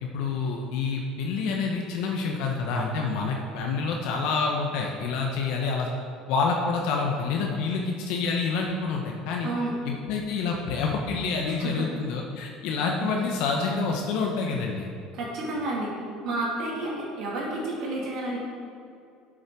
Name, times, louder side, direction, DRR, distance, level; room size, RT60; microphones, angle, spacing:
voice 1, 0.0-5.9 6.3-9.5 9.8-14.9, left 4 dB, 75° left, 0 dB, 1.0 m, -27 dB
voice 2, 9.4-9.7 11.6-11.9 15.1-15.9 16.2-18.4, right 2 dB, 60° right, -4 dB, 2.5 m, -30 dB
8.0 x 6.4 x 6.1 m, 2.4 s
cardioid pair, 125°, 0 cm